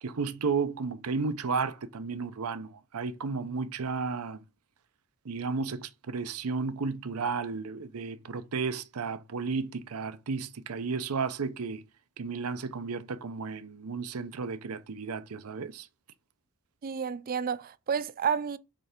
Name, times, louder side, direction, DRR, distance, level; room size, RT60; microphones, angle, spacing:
voice 1, 0.0-4.4 5.2-11.8 12.2-15.9, right 4 dB, 80° right, 0.6 m, -33 dB
voice 2, 16.8-18.6, right 7 dB, 40° right, 0.4 m, -30 dB
6.8 x 3.3 x 5.0 m
head